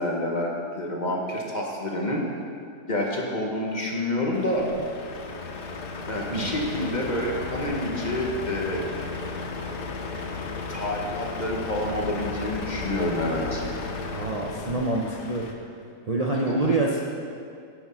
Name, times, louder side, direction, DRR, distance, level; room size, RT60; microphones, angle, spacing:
voice 1, 0.0-2.2 2.9-4.7 6.1-8.8 10.7-13.6 16.5-16.6, left 1 dB, 30° left, -1 dB, 0.9 m, -28 dB
Truck, 4.3-15.5, left 4 dB, 75° left, 1.4 m, -34 dB
voice 2, 14.1-15.5 16.1-17.0, right 2 dB, 80° right, -3 dB, 0.3 m, -26 dB
9.8 x 6.1 x 5.6 m, 2.3 s
omnidirectional pair, 1.8 m